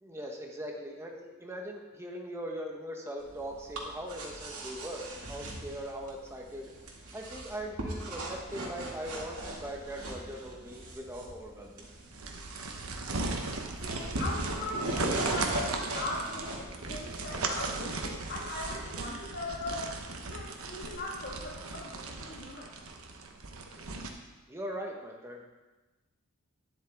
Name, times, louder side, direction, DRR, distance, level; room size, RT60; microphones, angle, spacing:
voice 1, 0.0-6.7 7.1-11.8 23.7-23.9 24.5-25.4, equal, 10° right, 1 dB, 1.2 m, -40 dB
sound 1, 3.2-18.7, right 1 dB, 90° right, 2.1 m, -40 dB
sound 2, 12.1-24.1, right 3 dB, 70° right, 1.1 m, -37 dB
voice 2, 13.8-19.9 20.2-22.7, left 2 dB, 50° left, -4 dB, 1.6 m, -39 dB
12.0 x 10.0 x 3.5 m, 1.2 s
head